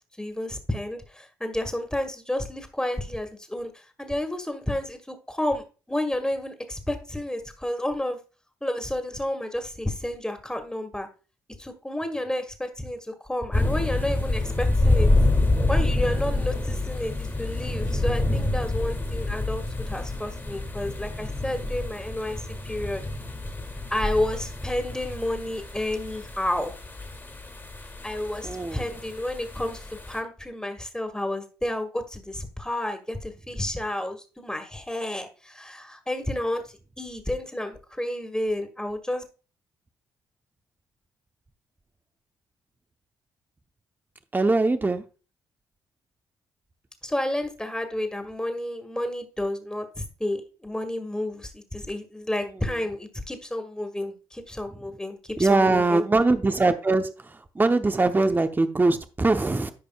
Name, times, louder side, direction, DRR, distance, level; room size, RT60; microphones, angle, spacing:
voice 1, 0.2-8.2 8.6-11.1 11.6-15.1 15.7-23.0 23.9-26.7 28.0-29.8 30.1-39.2 47.0-56.0, left 1 dB, 10° left, 6 dB, 1.8 m, -31 dB
sound 1, 13.5-30.2, left 2 dB, 25° left, 2.1 m, -27 dB
voice 2, 28.4-28.9 44.3-45.0 55.4-59.7, right 3 dB, 20° right, 8 dB, 0.8 m, -22 dB
13.5 x 5.2 x 2.3 m, 0.35 s
supercardioid pair, 55°, 9 cm